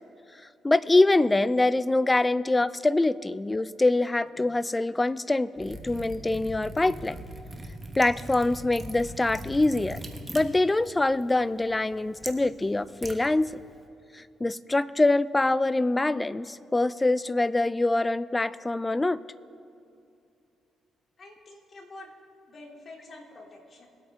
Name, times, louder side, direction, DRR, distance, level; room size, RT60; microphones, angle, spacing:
voice 1, 0.6-7.2 8.0-10.0 10.3-13.6 14.1-19.2, left 2 dB, 15° left, 17 dB, 0.4 m, -24 dB
Liquid, 5.6-13.8, right 1 dB, 20° right, 1.2 m, -42 dB
voice 2, 21.2-22.1 22.5-23.9, left 2 dB, 45° left, -1 dB, 2.7 m, -47 dB
21.5 x 8.6 x 3.5 m, 2.7 s
cardioid pair, 90°, 0 cm